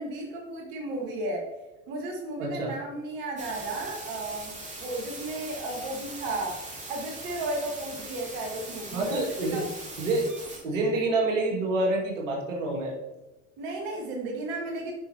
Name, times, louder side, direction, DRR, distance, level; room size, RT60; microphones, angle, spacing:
voice 1, 0.0-1.5 1.9-4.5 4.8-6.6 6.9-9.2 9.5-9.7 13.6-14.9, right 2 dB, 60° right, 0 dB, 1.8 m, -34 dB
voice 2, 2.4-2.7 8.9-9.6 10.0-10.2 10.6-12.9, right 2 dB, 85° right, -1 dB, 2.2 m, -27 dB
sound 1, 3.4-10.6, right 2 dB, 20° right, 2.7 m, -41 dB
9.5 x 6.0 x 2.9 m, 1.1 s
hypercardioid pair, 80°, 38 cm